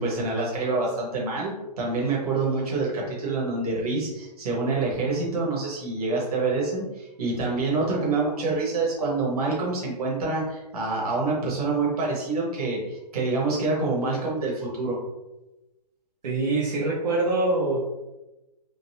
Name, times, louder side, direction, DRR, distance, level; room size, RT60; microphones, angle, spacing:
voice 1, 0.0-15.0, right 3 dB, 65° right, -4 dB, 1.4 m, -26 dB
voice 2, 16.2-17.8, right 2 dB, 85° right, -5 dB, 1.1 m, -24 dB
3.8 x 2.2 x 2.7 m, 1.0 s
hypercardioid pair, 165°, 21 cm